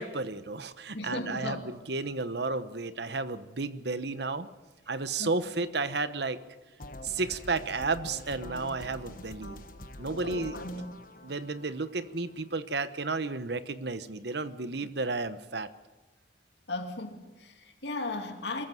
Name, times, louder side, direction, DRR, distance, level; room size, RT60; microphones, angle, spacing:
voice 1, 0.0-4.5 4.9-6.4 7.0-9.6 10.0-10.5 11.2-15.7, right 3 dB, 60° right, 1.0 m, -32 dB
voice 2, 0.9-1.6 5.2-5.3 10.2-11.0 16.7-18.6, left 2 dB, 65° left, 2.7 m, -36 dB
sound 1, 6.8-12.8, left 1 dB, 45° left, 1.3 m, -46 dB
23.0 x 14.0 x 9.2 m
head